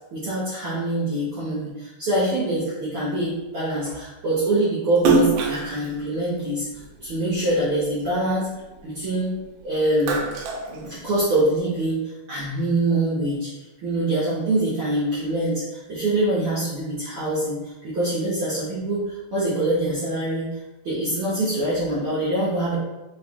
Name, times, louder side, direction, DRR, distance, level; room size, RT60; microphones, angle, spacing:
voice 1, 0.1-6.7 7.0-8.5 8.8-10.2 10.7-12.0 12.3-13.5 13.8-20.6 20.8-22.7, right 1 dB, 60° right, -10 dB, 1.5 m, -24 dB
Splash splatter, 4.9-7.5 8.0-9.4 9.8-11.5, right 3 dB, 85° right, 2.1 m, -25 dB
4.5 x 4.2 x 2.3 m, 1.1 s
omnidirectional pair, 3.6 m